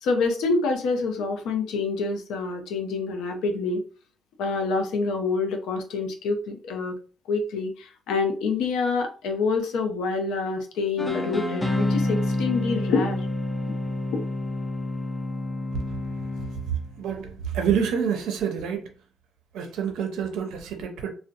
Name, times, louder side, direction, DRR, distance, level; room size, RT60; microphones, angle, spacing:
voice 1, 0.0-3.8 4.4-6.9 7.3-13.2, left 4 dB, 90° left, 0.5 m, -26 dB
sound 1, 11.0-16.9, left 2 dB, 25° left, 0.6 m, -28 dB
voice 2, 17.0-18.8 19.5-21.1, right 7 dB, 85° right, 0.5 m, -27 dB
2.6 x 2.0 x 2.6 m
cardioid pair, 90°, 0 cm